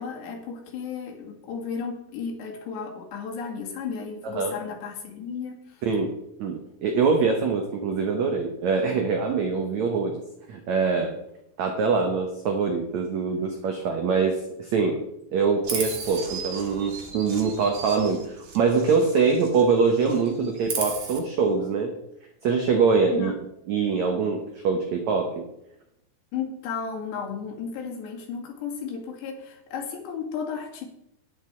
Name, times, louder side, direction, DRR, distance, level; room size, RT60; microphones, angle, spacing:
voice 1, 0.0-5.8 23.1-23.4 26.3-30.9, left 6 dB, 85° left, 0 dB, 4.3 m, -34 dB
voice 2, 6.4-10.2 10.5-11.2 11.6-15.0 15.3-21.9 22.4-23.3 23.7-25.4, right 5 dB, 85° right, 4 dB, 1.6 m, -24 dB
Chirp tweet, 15.6-19.7 20.0-21.2, right 5 dB, 50° right, 1.9 m, -35 dB
10.5 x 10.0 x 4.4 m, 0.82 s
omnidirectional pair, 4.8 m